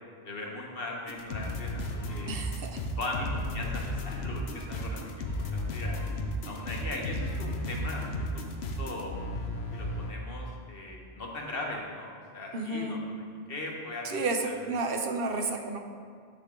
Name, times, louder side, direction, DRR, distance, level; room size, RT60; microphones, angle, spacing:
voice 1, 0.2-2.3 3.0-6.0 6.4-9.2 9.7-14.1 14.5-14.7, left 2 dB, 65° left, 0 dB, 1.4 m, -39 dB
sound 1, 1.1-10.1, left 1 dB, 90° left, 1.1 m, -34 dB
voice 2, 2.3-2.8 12.5-13.0 14.0-15.8, right 3 dB, 65° right, 5 dB, 1.0 m, -31 dB
10.5 x 6.7 x 3.7 m, 2.2 s
omnidirectional pair, 1.0 m